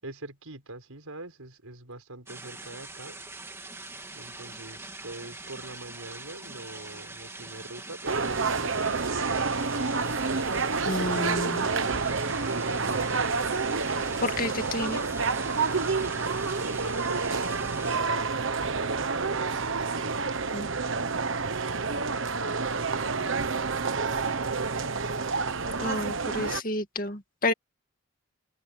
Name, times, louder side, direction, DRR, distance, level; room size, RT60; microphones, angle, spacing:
voice 1, 0.0-3.2 4.1-9.1 10.9-13.4 14.4-15.3 16.0-18.5 20.0-20.8 21.4-21.5 21.8-24.8, right 2 dB, 85° right, 5.1 m, -44 dB
sound 1, 2.3-18.0, right 2 dB, 10° right, 2.4 m, -43 dB
sound 2, 8.1-26.6, right 4 dB, 60° right, 1.2 m, -28 dB
voice 2, 10.9-11.7 14.2-15.0 20.5-20.7 25.8-27.5, left 2 dB, 40° left, 2.3 m, -30 dB
head